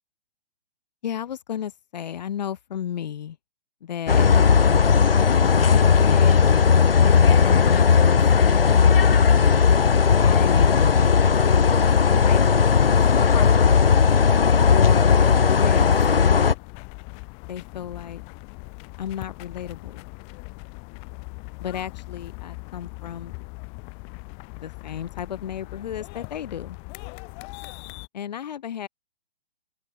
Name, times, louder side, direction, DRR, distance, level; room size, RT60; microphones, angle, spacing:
voice 1, 1.0-3.4 3.8-4.3 5.1-6.3 6.9-8.8 10.2-11.1 12.2-12.4 13.0-13.8 14.7-15.9 16.3-16.5 17.5-18.2 19.0-20.0 21.6-23.3 24.6-26.8 28.1-28.9, left 9 dB, 45° left, 1.6 m, -33 dB
sound 1, 4.1-16.5, left 6 dB, 70° left, 0.9 m, -17 dB
sound 2, 15.1-28.1, left 37 dB, 20° left, 1.1 m, -40 dB
open air
figure-of-eight pair, 125°, 29 cm